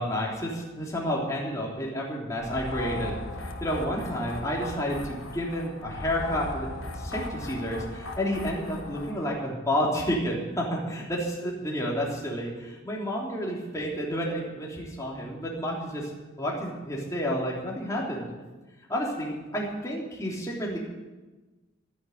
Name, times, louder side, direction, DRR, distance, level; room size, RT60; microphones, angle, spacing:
voice 1, 0.0-3.2 3.6-6.7 6.9-16.1 16.4-18.3 18.9-20.8, equal, 15° left, -3 dB, 3.2 m, -30 dB
sound 1, 2.4-9.2, left 1 dB, 70° left, 1.7 m, -37 dB
12.5 x 10.5 x 9.2 m, 1.2 s
head